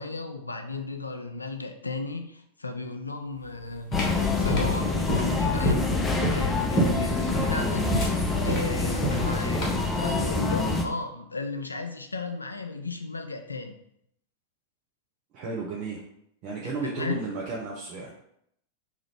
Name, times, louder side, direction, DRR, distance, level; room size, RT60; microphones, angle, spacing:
voice 1, 0.0-4.0 4.4-7.9 8.4-9.7 10.0-13.8 16.6-17.2, left 3 dB, 80° left, 6 dB, 0.3 m, -34 dB
sound 1, 3.5-10.0, equal, 40° left, 1.0 m, -28 dB
sound 2, 3.9-10.9, left 3 dB, 10° left, 0.4 m, -26 dB
voice 2, 15.3-16.0 16.4-18.1, right 4 dB, 40° right, -3 dB, 0.5 m, -33 dB
2.8 x 2.4 x 3.3 m, 0.73 s
figure-of-eight pair, 90°, 0 cm